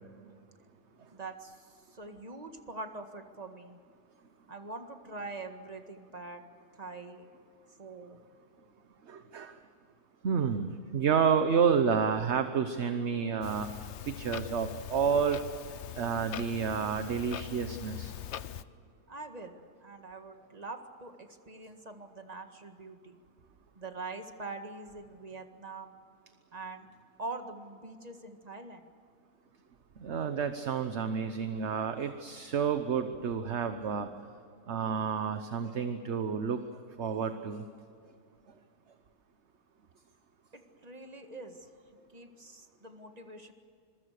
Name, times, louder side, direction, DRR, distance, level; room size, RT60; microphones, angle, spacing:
voice 1, 1.1-3.8 4.5-6.4 6.7-7.3 7.8-8.2 19.1-23.2 23.8-25.9 26.5-26.9 27.2-28.8 40.5-41.7 42.1-43.5, right 3 dB, 25° right, 6 dB, 1.8 m, -44 dB
voice 2, 9.1-9.5 10.2-13.7 14.1-15.4 16.0-18.1 30.0-34.1 34.7-36.6 37.0-37.6, right 6 dB, 50° right, 8 dB, 1.2 m, -30 dB
Clock, 13.4-18.6, left 10 dB, 55° left, 0.8 m, -42 dB
26.0 x 23.0 x 6.6 m, 2.3 s
omnidirectional pair, 1.7 m